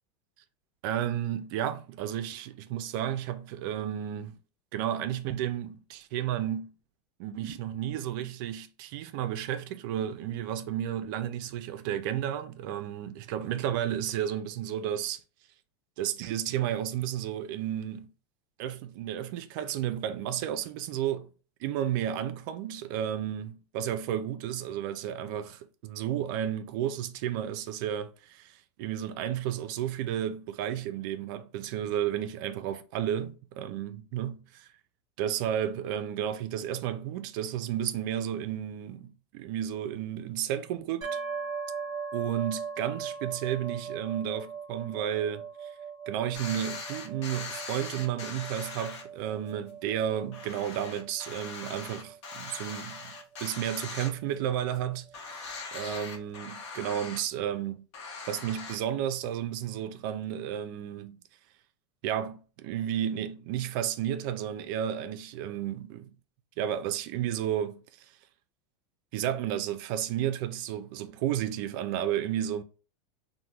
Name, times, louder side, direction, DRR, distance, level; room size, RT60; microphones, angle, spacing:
voice 1, 0.8-4.4 4.7-6.7 7.2-15.2 16.0-18.1 18.6-21.3 21.6-34.7 35.2-41.2 42.1-45.7 46.1-53.1 53.4-57.9 58.3-61.2 62.0-66.1 66.6-67.8 69.1-72.6, right 10 dB, 50° right, 0.4 m, -32 dB
sound 1, 41.0-54.7, right 6 dB, 30° right, 0.9 m, -40 dB
sound 2, 46.3-49.0 49.5-49.6 50.0-50.1 50.3-54.5 54.7-54.8 55.1-57.2 57.9-58.8, left 4 dB, 90° left, 0.8 m, -41 dB
2.9 x 2.1 x 3.3 m
supercardioid pair, 170°, 14 cm